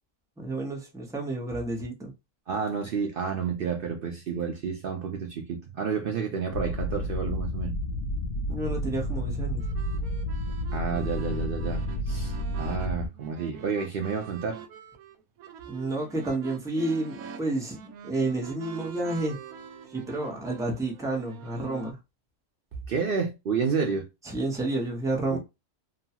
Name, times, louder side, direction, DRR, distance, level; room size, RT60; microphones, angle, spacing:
voice 1, 0.4-2.1 8.5-9.6 15.7-19.4 19.9-22.0 24.2-25.4, right 2 dB, 5° right, 0.6 m, -30 dB
voice 2, 2.5-7.8 10.7-12.3 12.6-14.6 22.9-24.1 25.3-25.4, right 6 dB, 85° right, 0.4 m, -30 dB
sound 1, 6.5-13.1, left 1 dB, 65° left, 0.9 m, -31 dB
sound 2, 9.6-21.9, right 7 dB, 70° right, 1.0 m, -44 dB
2.9 x 2.2 x 2.7 m
omnidirectional pair, 1.6 m